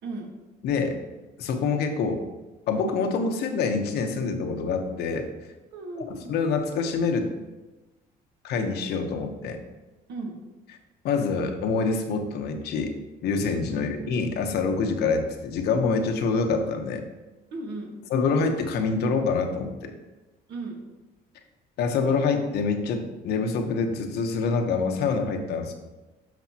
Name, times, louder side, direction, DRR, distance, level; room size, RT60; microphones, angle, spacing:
voice 1, 0.0-0.3 5.7-6.3 10.1-10.4 13.7-13.8 17.5-18.0 20.5-20.8, right 3 dB, 80° right, 1 dB, 1.6 m, -36 dB
voice 2, 0.6-1.0 1.4-2.2 2.7-5.3 6.3-7.3 8.4-9.6 11.0-12.9 13.2-17.0 18.1-19.9 21.8-25.7, left 4 dB, 75° left, 5 dB, 1.0 m, -26 dB
12.0 x 5.2 x 2.9 m, 1.1 s
cardioid pair, 110°, 17 cm